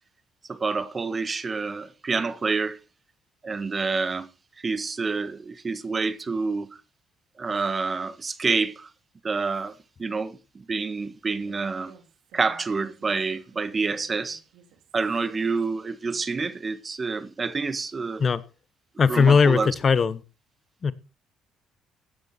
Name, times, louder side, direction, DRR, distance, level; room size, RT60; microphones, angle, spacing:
voice 1, 0.5-2.8 3.4-4.3 4.6-6.7 7.4-8.9 9.2-10.4 10.7-11.9 12.3-14.4 14.9-18.2 19.1-19.7, right 4 dB, 30° right, 1.5 m, -28 dB
Human voice, 11.4-16.6, right 6 dB, 80° right, 3.4 m, -55 dB
voice 2, 19.0-20.2 20.8-20.9, left 5 dB, 40° left, 1.1 m, -19 dB
15.5 x 9.7 x 4.4 m
supercardioid pair, 85°, 0 cm